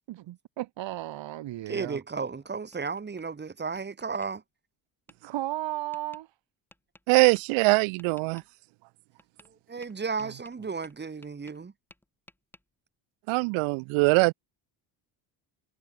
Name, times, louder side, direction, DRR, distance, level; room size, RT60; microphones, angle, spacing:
voice 1, 0.1-2.0 5.2-6.3 10.2-10.3, right 14 dB, 65° right, 3.9 m, -35 dB
voice 2, 1.7-4.4 9.5-11.7, right 5 dB, 20° right, 2.4 m, -34 dB
Tap, 2.2-3.3 3.8-4.3 5.1-5.2 5.9-6.2 6.7-7.4 8.0-8.5 9.2-9.5 9.8-11.7 11.9-12.6, left 1 dB, 5° left, 7.6 m, -57 dB
voice 3, 7.1-8.4 13.3-14.3, right 28 dB, 85° right, 0.5 m, -22 dB
cardioid pair, 120°, 47 cm